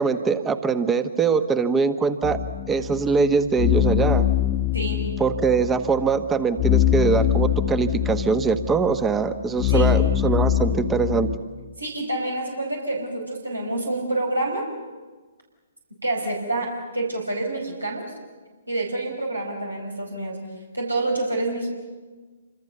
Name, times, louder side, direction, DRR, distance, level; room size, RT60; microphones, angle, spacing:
voice 1, 0.0-2.4 2.7-4.2 5.2-11.3, right 5 dB, 10° right, 11 dB, 1.3 m, -22 dB
sound 1, 2.2-11.4, left 12 dB, 30° left, 1.4 m, -24 dB
voice 2, 4.7-5.1 9.7-10.0 11.8-14.7 16.0-18.1 18.7-20.4 20.7-21.7, right 2 dB, 90° right, 0 dB, 5.1 m, -27 dB
28.0 x 25.5 x 6.9 m, 1.3 s
figure-of-eight pair, 125°, 0 cm